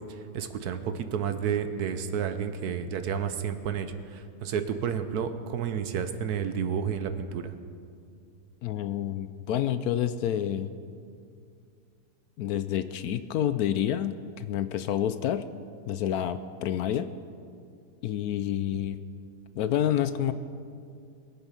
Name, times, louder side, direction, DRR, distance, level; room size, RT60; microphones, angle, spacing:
voice 1, 0.1-7.5, right 7 dB, 70° right, 9 dB, 1.3 m, -31 dB
voice 2, 8.6-10.7 12.4-15.5 15.9-17.1 18.0-19.0 19.6-20.3, left 10 dB, 70° left, 12 dB, 1.0 m, -28 dB
22.0 x 8.1 x 5.7 m, 2.3 s
omnidirectional pair, 1.8 m